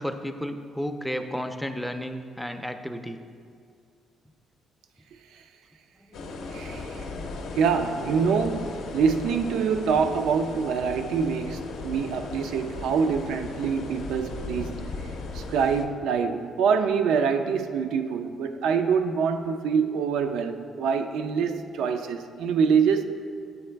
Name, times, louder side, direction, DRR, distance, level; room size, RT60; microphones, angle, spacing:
voice 1, 0.0-3.2 6.2-6.3, equal, ahead, 7 dB, 0.3 m, -32 dB
sound 1, 6.1-15.8, left 3 dB, 85° left, 0.5 m, -36 dB
voice 2, 6.5-7.1 7.6-14.9 15.3-23.0, right 6 dB, 85° right, 7 dB, 0.3 m, -25 dB
8.2 x 3.8 x 3.3 m, 2.2 s
cardioid pair, 90°, 0 cm